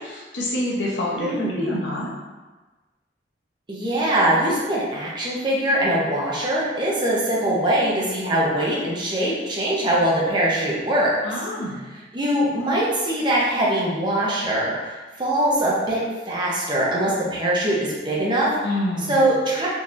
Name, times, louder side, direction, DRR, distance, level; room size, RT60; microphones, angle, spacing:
voice 1, 0.0-2.1 11.2-11.8 18.6-19.2, left 1 dB, 85° left, -3 dB, 0.8 m, -27 dB
voice 2, 1.1-1.7 3.7-11.2 12.1-16.0 16.3-18.5 19.1-19.7, right 1 dB, 25° right, -5 dB, 0.7 m, -22 dB
3.8 x 2.9 x 2.5 m, 1.2 s
head